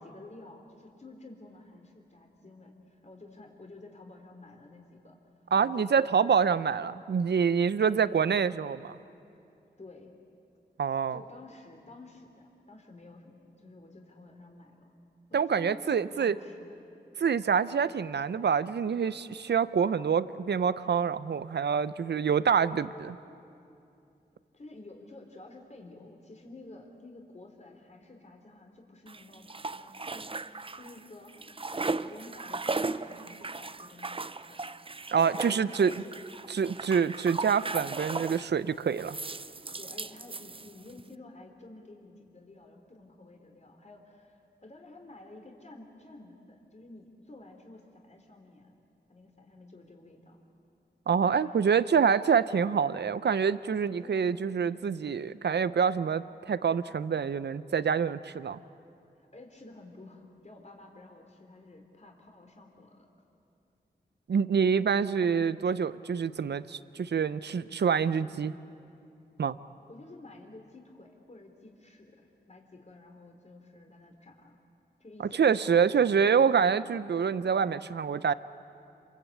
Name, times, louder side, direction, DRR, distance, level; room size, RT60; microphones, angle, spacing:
voice 1, 0.0-5.2 5.6-6.6 7.8-8.0 9.8-10.1 11.1-14.9 15.3-16.8 24.5-34.6 35.3-36.2 39.8-48.7 49.1-50.4 51.2-51.9 54.0-54.4 59.2-63.1 69.9-74.6 75.0-76.4, left 2 dB, 40° left, 2 dB, 3.4 m, -51 dB
voice 2, 5.5-9.0 10.8-11.2 15.3-16.3 17.2-23.2 35.1-35.9 36.5-39.2 51.1-58.6 64.3-68.5 69.4-69.6 75.4-78.3, right 6 dB, 75° right, 15 dB, 0.7 m, -26 dB
sound 1, 29.1-31.0 31.3-38.5 39.0-41.0, right 3 dB, 30° right, 0.7 m, -37 dB
27.5 x 23.0 x 8.5 m, 2.6 s
cardioid pair, 60°, 18 cm